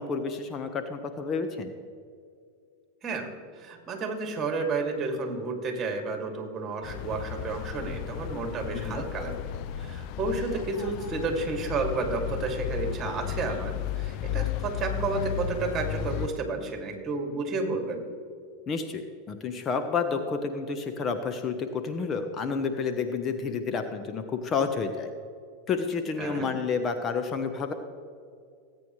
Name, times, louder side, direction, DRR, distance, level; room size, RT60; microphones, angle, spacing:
voice 1, 0.0-1.7 8.7-9.0 18.7-25.1 25.7-27.7, left 5 dB, 30° left, 7 dB, 1.0 m, -30 dB
voice 2, 3.5-9.3 9.8-18.0 26.2-26.5, right 3 dB, 30° right, 3 dB, 2.6 m, -31 dB
sound 1, 6.8-16.3, left 10 dB, 55° left, 0.5 m, -34 dB
19.0 x 9.1 x 3.2 m, 2.3 s
hypercardioid pair, 105°, 0 cm